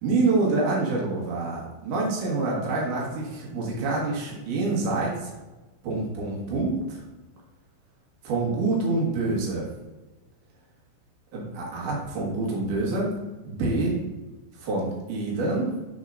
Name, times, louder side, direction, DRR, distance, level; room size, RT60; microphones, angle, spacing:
voice 1, 0.0-5.3 5.8-7.0 8.2-9.7 11.3-13.1 13.4-14.0 14.6-15.7, right 3 dB, 55° right, -4 dB, 2.7 m, -26 dB
9.0 x 5.6 x 2.6 m, 1.1 s
omnidirectional pair, 5.3 m